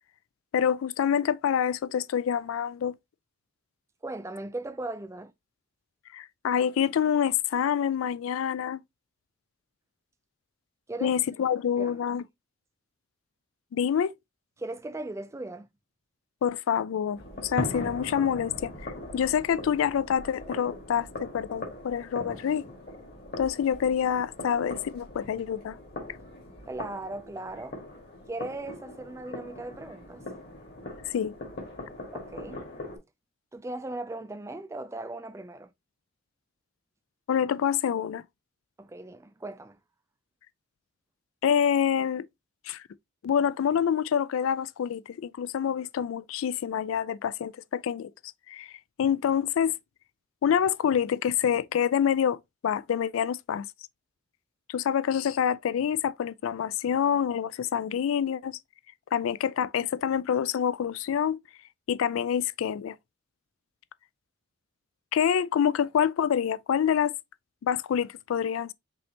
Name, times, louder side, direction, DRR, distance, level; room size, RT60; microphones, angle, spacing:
voice 1, 0.5-2.9 6.1-8.8 11.0-12.2 13.7-14.1 16.4-18.7 19.1-22.6 23.4-25.8 31.1-31.3 37.3-38.2 41.4-42.2 42.7-42.8 43.2-48.1 48.5-48.7 49.0-49.7 50.4-52.4 52.6-53.7 54.7-58.5 59.1-61.4 61.9-63.0 65.1-67.1 67.6-68.7, left 8 dB, 80° left, 0.3 m, -26 dB
voice 2, 4.0-5.3 10.9-11.2 11.7-11.9 14.6-15.7 26.7-27.8 28.3-30.6 32.1-32.6 33.5-35.7 38.8-39.8, right 2 dB, 15° right, 0.3 m, -38 dB
sound 1, 17.2-33.0, left 1 dB, 50° left, 1.7 m, -40 dB
5.4 x 3.2 x 2.8 m
head